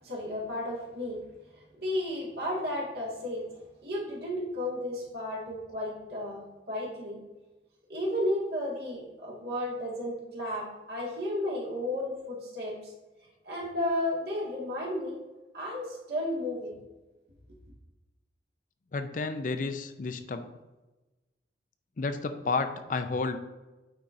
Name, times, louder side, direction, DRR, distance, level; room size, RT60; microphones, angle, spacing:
voice 1, 0.0-1.2 1.8-3.4 3.8-7.2 7.9-12.9 13.4-15.1 15.5-16.8, left 1 dB, 65° right, -4 dB, 1.9 m, -33 dB
voice 2, 18.9-20.5 22.0-23.4, left 3 dB, 45° left, 9 dB, 0.4 m, -31 dB
9.2 x 4.4 x 2.6 m, 1.1 s
head